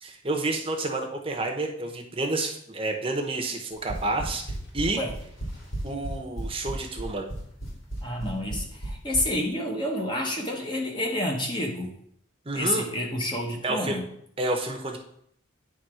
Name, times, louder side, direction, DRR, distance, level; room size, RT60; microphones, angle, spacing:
voice 1, 0.0-5.0 5.8-7.3 12.4-12.8 13.6-14.0 14.4-15.0, right 2 dB, 30° right, 3 dB, 0.9 m, -29 dB
sound 1, 3.7-9.2, right 1 dB, 75° left, 3.3 m, -33 dB
voice 2, 8.0-12.0 12.5-14.1, left 1 dB, 25° left, 0 dB, 1.0 m, -29 dB
9.3 x 3.6 x 4.9 m, 0.71 s
head